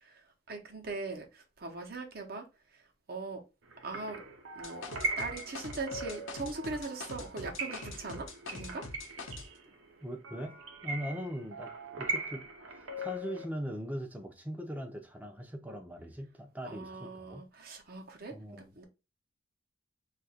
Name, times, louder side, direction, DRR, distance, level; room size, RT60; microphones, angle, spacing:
voice 1, 0.0-2.4 3.1-3.4 3.8-4.2 4.6-4.8 5.2-8.8 16.6-18.8, right 3 dB, 50° right, 0.8 m, -40 dB
sound 1, 3.7-13.4, right 2 dB, 80° right, 0.7 m, -40 dB
sound 2, 4.6-9.5, left 3 dB, 75° left, 0.8 m, -44 dB
voice 2, 10.0-17.4 18.3-18.8, equal, 10° right, 0.6 m, -41 dB
2.8 x 2.5 x 4.2 m
head